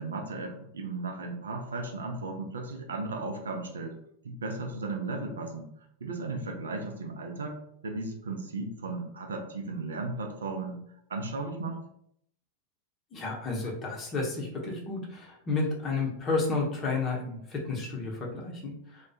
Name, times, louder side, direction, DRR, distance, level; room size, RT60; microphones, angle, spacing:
voice 1, 0.0-4.0 4.2-5.7 6.0-10.8 11.1-11.8, right 3 dB, 70° right, 3 dB, 0.4 m, -35 dB
voice 2, 13.1-18.7, left 3 dB, 25° left, -1 dB, 0.7 m, -31 dB
2.2 x 2.1 x 2.7 m, 0.71 s
figure-of-eight pair, 90°, 0 cm